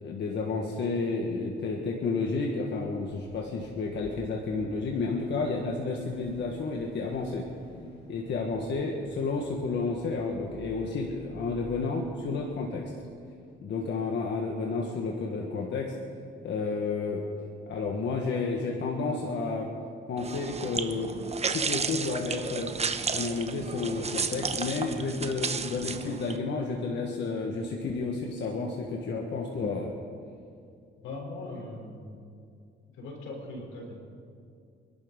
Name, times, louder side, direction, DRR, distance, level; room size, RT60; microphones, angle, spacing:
voice 1, 0.0-7.4 8.1-12.9 13.6-16.0 16.4-17.3 17.7-19.7 20.1-21.1 21.5-22.7 23.1-29.9, left 4 dB, 65° left, 0 dB, 1.8 m, -31 dB
Car / Idling / Accelerating revving vroom, 3.1-12.5, left 2 dB, 30° left, 4.4 m, -52 dB
sound 1, 20.2-26.4, right 5 dB, 30° right, 1.0 m, -33 dB
voice 2, 31.0-32.1 32.9-34.0, left 2 dB, 85° left, 0 dB, 4.2 m, -40 dB
26.0 x 12.0 x 4.0 m, 2.4 s
cardioid pair, 90°, 20 cm